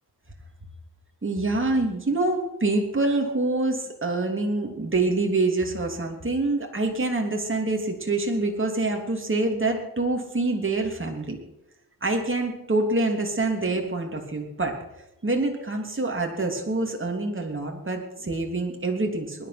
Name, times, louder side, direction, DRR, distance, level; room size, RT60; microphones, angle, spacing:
voice 1, 1.2-11.4 12.0-14.8 15.2-19.5, right 2 dB, 30° right, 2 dB, 3.0 m, -26 dB
19.5 x 11.0 x 6.0 m, 0.88 s
wide cardioid pair, 85°, 38 cm